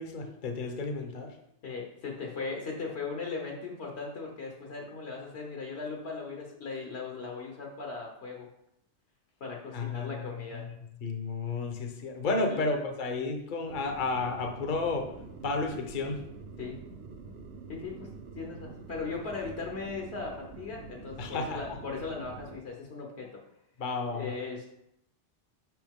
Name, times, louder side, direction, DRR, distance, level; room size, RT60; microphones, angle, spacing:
voice 1, 0.0-1.3 9.7-15.1 15.4-16.2 21.2-21.6 23.8-24.3, left 3 dB, 50° left, 4 dB, 0.8 m, -32 dB
voice 2, 1.6-8.5 9.4-10.7 12.5-12.6 16.6-16.8 17.7-23.4 24.1-24.7, left 4 dB, 65° left, 0 dB, 1.2 m, -38 dB
sound 1, 13.7-22.6, right 4 dB, 65° right, 0.9 m, -46 dB
6.0 x 5.6 x 3.6 m, 0.79 s
omnidirectional pair, 1.2 m